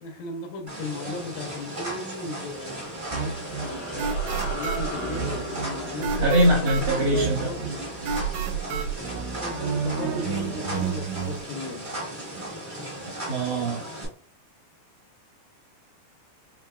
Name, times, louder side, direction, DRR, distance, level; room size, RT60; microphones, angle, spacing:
voice 1, 0.0-4.1 4.5-7.7 8.6-8.9 9.4-12.0, left 2 dB, 80° left, 2.2 m, -36 dB
sound 1, 0.7-14.0, right 1 dB, 40° right, 0.6 m, -36 dB
sound 2, 2.5-9.2, left 2 dB, 55° left, 0.7 m, -39 dB
sound 3, 3.1-11.4, right 7 dB, 90° right, 1.8 m, -31 dB
voice 2, 6.1-7.5 13.3-13.8, right 1 dB, 65° right, 1.7 m, -22 dB
5.7 x 2.8 x 2.3 m
omnidirectional pair, 4.2 m